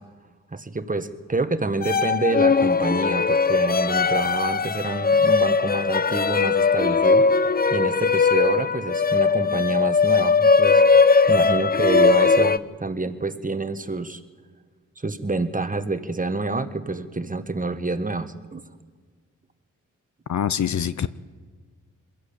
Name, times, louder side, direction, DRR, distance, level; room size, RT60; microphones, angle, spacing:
voice 1, 0.5-7.3 7.7-14.2 15.0-18.6, right 3 dB, 25° right, 10 dB, 1.5 m, -27 dB
sound 1, 1.8-12.6, left 4 dB, 30° left, 0.6 m, -19 dB
voice 2, 20.3-21.1, left 8 dB, 60° left, 15 dB, 0.7 m, -24 dB
22.0 x 14.0 x 8.6 m, 1.5 s
cardioid pair, 50°, 32 cm